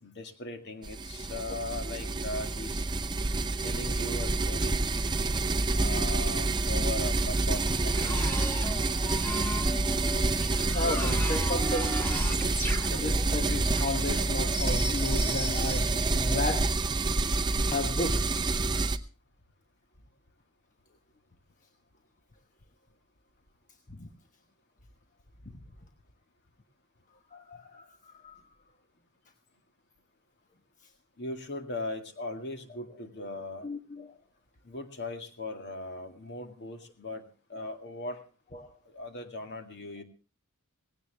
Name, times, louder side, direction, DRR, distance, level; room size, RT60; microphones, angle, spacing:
voice 1, 0.0-2.9 3.6-4.8 5.7-8.2 31.2-33.7 34.6-37.2 37.5-38.2 38.9-40.0, left 2 dB, 50° left, 6 dB, 2.1 m, -38 dB
sound 1, 0.8-19.0, right 3 dB, 20° right, 0.7 m, -28 dB
sound 2, 7.5-15.9, equal, 10° left, 1.8 m, -37 dB
voice 2, 10.7-12.0 12.7-16.7 17.0-17.2 17.7-18.3 23.9-24.1 25.4-25.5 27.3-28.4 33.6-34.1 37.5-37.7 38.5-38.7, left 2 dB, 35° left, 4 dB, 1.2 m, -34 dB
18.5 x 16.5 x 3.4 m, 0.34 s
head